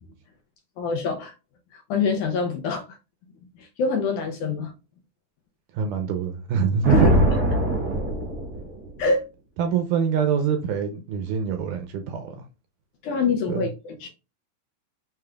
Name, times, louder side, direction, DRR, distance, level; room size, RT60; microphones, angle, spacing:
voice 1, 0.8-1.3 1.7-2.8 3.6-4.7 6.9-7.4 9.0-9.2 13.0-14.1, left 4 dB, 80° left, 1.9 m, -25 dB
voice 2, 5.7-7.2 9.6-12.4 13.5-13.6, right 7 dB, 80° right, 2.0 m, -24 dB
Thunder, 6.8-9.0, right 1 dB, 35° right, 0.8 m, -22 dB
6.7 x 3.3 x 2.3 m
omnidirectional pair, 4.0 m